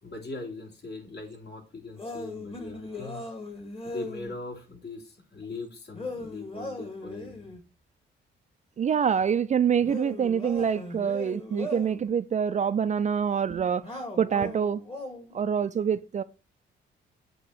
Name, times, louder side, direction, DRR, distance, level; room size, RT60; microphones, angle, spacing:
voice 1, 0.0-3.2 3.8-7.5, left 3 dB, 55° left, 3.1 m, -40 dB
sound 1, 2.0-4.3 5.9-7.6 9.8-12.1 13.8-15.4, left 2 dB, 30° left, 2.1 m, -38 dB
voice 2, 8.8-14.8 15.3-16.2, right 7 dB, 35° right, 0.4 m, -26 dB
8.3 x 3.0 x 6.3 m
cardioid pair, 90°, 20 cm